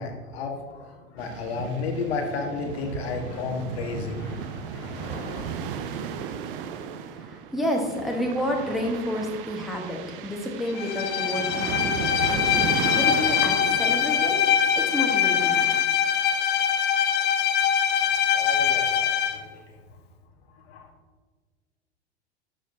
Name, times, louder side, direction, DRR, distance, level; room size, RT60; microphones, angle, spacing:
voice 1, 0.0-5.6 18.3-19.8 20.5-20.9, left 4 dB, 65° left, 3 dB, 1.4 m, -33 dB
sound 1, 1.2-15.8, right 7 dB, 50° right, 0.7 m, -35 dB
voice 2, 7.1-15.6, left 1 dB, ahead, -1 dB, 1.3 m, -30 dB
Bowed string instrument, 10.8-19.4, left 8 dB, 30° left, 0.6 m, -23 dB
11.5 x 6.3 x 2.7 m, 1.4 s
figure-of-eight pair, 85°, 34 cm